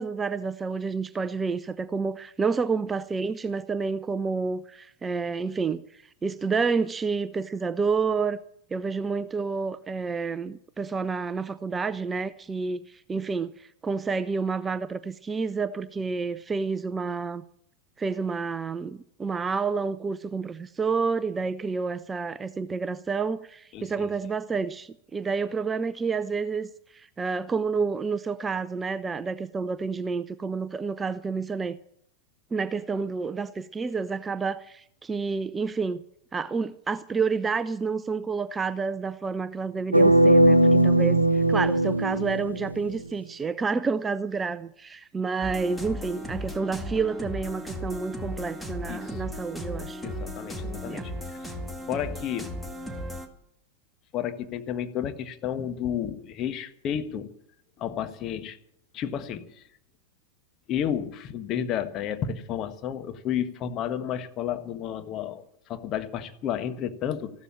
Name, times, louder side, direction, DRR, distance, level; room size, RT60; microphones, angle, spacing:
voice 1, 0.0-8.4 8.7-17.4 18.0-31.8 32.5-36.0 36.3-50.0 50.9-51.1, right 4 dB, 15° right, 0.5 m, -29 dB
voice 2, 23.7-24.1 48.9-49.2 50.0-51.1 51.4-51.5 51.9-52.6 54.1-57.3 57.8-58.6 58.9-59.4 60.7-65.4 65.7-67.3, left 9 dB, 35° left, 1.5 m, -31 dB
sound 1, 39.9-43.0, right 1 dB, 85° right, 0.7 m, -19 dB
sound 2, 45.4-53.3, equal, ahead, 2.0 m, -36 dB
15.0 x 12.5 x 7.4 m
figure-of-eight pair, 90°, 0 cm